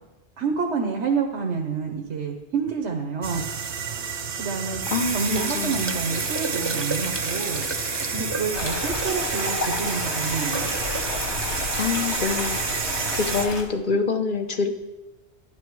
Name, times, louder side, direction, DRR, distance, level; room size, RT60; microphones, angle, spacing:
voice 1, 0.4-3.5 4.0-4.8 5.1-7.7 8.1-10.7 13.2-13.3, right 5 dB, 90° right, 2 dB, 1.4 m, -28 dB
sound 1, 3.2-13.5, right 7 dB, 55° right, 0.9 m, -32 dB
sound 2, 4.8-13.4, right 3 dB, 25° right, 0.8 m, -30 dB
voice 2, 4.9-5.9 11.8-12.6 13.1-14.7, left 4 dB, 50° left, 6 dB, 1.1 m, -26 dB
sound 3, 8.5-13.6, left 2 dB, 80° left, 1.9 m, -31 dB
11.5 x 10.5 x 4.8 m, 1.1 s
omnidirectional pair, 1.1 m